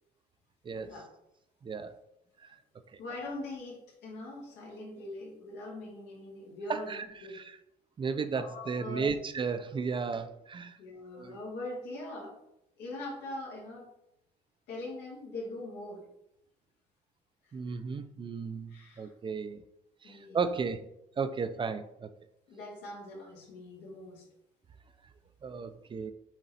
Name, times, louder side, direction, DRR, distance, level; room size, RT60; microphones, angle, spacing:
voice 1, 1.6-1.9 2.4-2.5 2.9-3.0 6.7-7.0 7.3-7.4 8.0-10.8 11.1-11.4 17.5-19.6 20.0-20.8 21.2-22.1 25.4-26.1, right 5 dB, 30° right, 11 dB, 0.5 m, -34 dB
voice 2, 3.0-7.4 8.3-9.2 10.8-12.4 12.8-13.9 14.7-16.0 17.4-17.8 18.7-19.1 20.0-20.4 22.5-24.3 24.8-24.9, left 2 dB, 80° left, -2 dB, 2.2 m, -42 dB
7.5 x 3.9 x 4.1 m, 0.82 s
cardioid pair, 110°, 17 cm